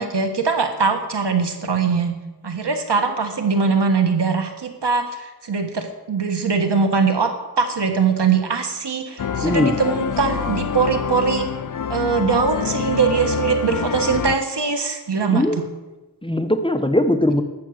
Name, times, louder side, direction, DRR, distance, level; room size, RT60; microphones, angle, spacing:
voice 1, 0.0-2.1 2.4-11.5 11.9-15.6, right 5 dB, 80° right, 6 dB, 1.6 m, -21 dB
sound 1, 9.2-14.4, left 7 dB, 50° left, 0.5 m, -26 dB
voice 2, 9.4-9.7 15.3-15.6 16.2-17.4, left 1 dB, 15° left, 7 dB, 1.0 m, -19 dB
12.0 x 8.5 x 6.6 m, 1.1 s
wide cardioid pair, 70°, 41 cm